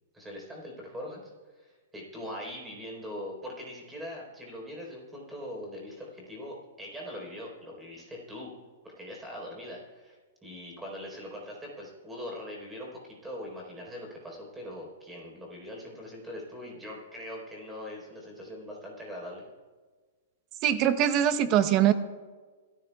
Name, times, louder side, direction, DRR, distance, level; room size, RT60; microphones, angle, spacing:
voice 1, 0.1-8.5 8.8-19.4, left 1 dB, 5° right, -2 dB, 4.1 m, -42 dB
voice 2, 20.6-21.9, right 10 dB, 30° right, 11 dB, 0.7 m, -22 dB
25.5 x 13.5 x 2.3 m, 1.4 s
hypercardioid pair, 160°, 0 cm